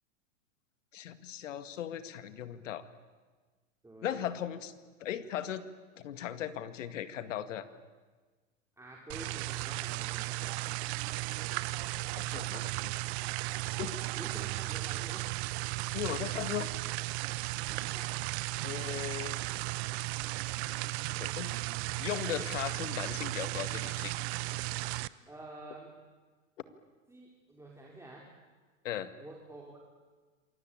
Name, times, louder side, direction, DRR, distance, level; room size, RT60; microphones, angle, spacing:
voice 1, 0.9-2.8 4.0-4.7 5.0-5.6 6.0-7.7 12.2-12.9 13.8-14.0 15.9-16.7 18.6-19.4 21.2-21.5 21.9-24.1 28.8-29.1, left 10 dB, 70° left, 12 dB, 2.1 m, -37 dB
voice 2, 3.8-4.3 8.8-10.6 14.1-15.3 16.5-16.7 17.6-18.1 25.3-25.9 27.1-28.3 29.2-29.8, right 2 dB, 5° right, -2 dB, 4.8 m, -49 dB
sound 1, 9.1-25.1, right 21 dB, 55° right, 1.0 m, -35 dB
27.5 x 23.0 x 8.8 m, 1.4 s
hypercardioid pair, 100°, 38 cm